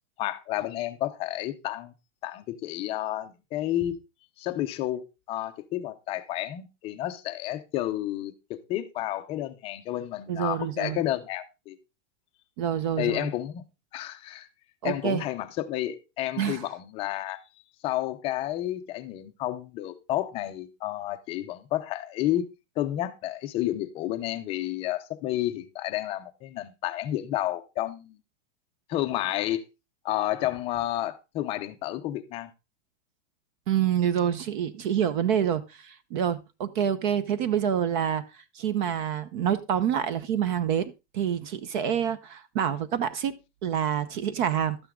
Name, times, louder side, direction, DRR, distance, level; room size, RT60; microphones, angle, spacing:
voice 1, 0.2-1.9 2.2-4.0 4.4-11.8 13.0-13.6 13.9-14.5 14.8-17.4 17.8-22.5 22.8-28.2 28.9-29.6 30.0-32.5, left 14 dB, 15° left, 0.5 m, -31 dB
voice 2, 10.3-11.0 12.6-13.3 14.8-15.2 16.4-16.6 33.7-38.2 38.5-44.8, right 9 dB, 40° right, 0.8 m, -27 dB
12.5 x 9.0 x 3.7 m
supercardioid pair, 170°, 36 cm